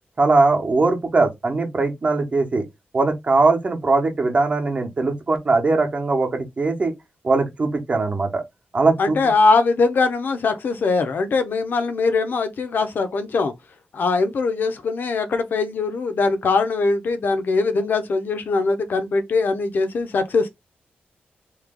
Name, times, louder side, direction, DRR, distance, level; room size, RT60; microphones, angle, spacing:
voice 1, 0.2-2.7 2.9-6.9 7.2-8.4 8.7-9.2, right 3 dB, 35° right, 1.0 m, -20 dB
voice 2, 9.0-13.5 13.9-20.5, left 3 dB, 60° left, 0.7 m, -21 dB
3.2 x 2.9 x 3.6 m
wide cardioid pair, 150°, 4 cm